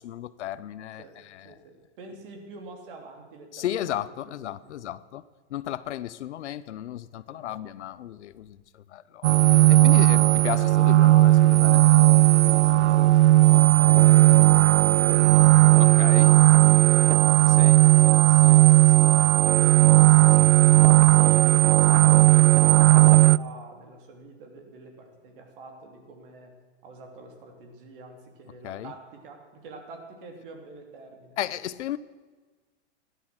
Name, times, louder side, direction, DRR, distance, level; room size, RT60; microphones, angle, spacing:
voice 1, 0.0-1.6 3.5-5.2 5.5-9.3 9.7-11.8 15.8-16.4 17.5-17.8 18.4-18.6 20.4-20.5 28.6-28.9 31.4-32.0, left 12 dB, 80° left, 17 dB, 0.8 m, -34 dB
voice 2, 1.4-4.0 4.3-4.4 4.6-4.9 7.3-7.6 11.8-18.1 18.5-20.0 21.1-26.5 26.8-31.4, right 3 dB, 50° right, 3 dB, 3.2 m, -46 dB
sound 1, 9.2-23.4, right 15 dB, 90° right, 0.5 m, -16 dB
15.5 x 11.0 x 7.8 m, 1.4 s
supercardioid pair, 165°, 34 cm